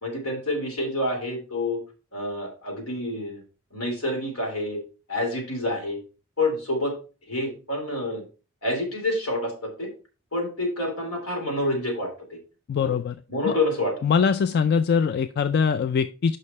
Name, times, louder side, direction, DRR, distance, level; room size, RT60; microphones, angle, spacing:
voice 1, 0.0-1.8 2.1-3.4 3.7-4.8 5.1-6.0 6.4-7.0 7.3-8.2 8.6-9.9 10.3-12.4 12.8-12.9 13.3-14.0, left 1 dB, 80° left, 1 dB, 3.0 m, -28 dB
voice 2, 12.7-13.1 13.4-13.6 14.0-16.4, left 6 dB, 50° left, 11 dB, 0.3 m, -22 dB
6.5 x 5.6 x 4.1 m, 0.35 s
head